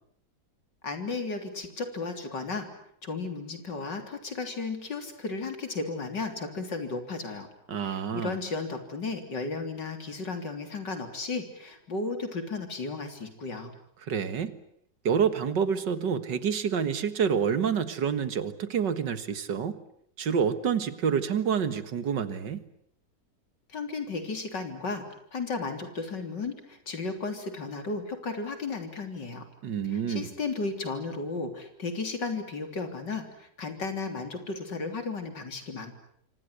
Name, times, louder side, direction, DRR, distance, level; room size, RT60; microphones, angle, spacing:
voice 1, 0.8-2.7 3.0-7.5 7.8-13.7 23.7-25.1 25.3-29.5 29.9-35.9, left 3 dB, 75° left, 7 dB, 4.1 m, -34 dB
voice 2, 7.7-8.4 14.1-14.6 15.0-19.7 20.2-22.6 29.6-30.3, right 7 dB, 75° right, 13 dB, 2.2 m, -28 dB
27.5 x 25.0 x 8.1 m, 0.67 s
omnidirectional pair, 1.9 m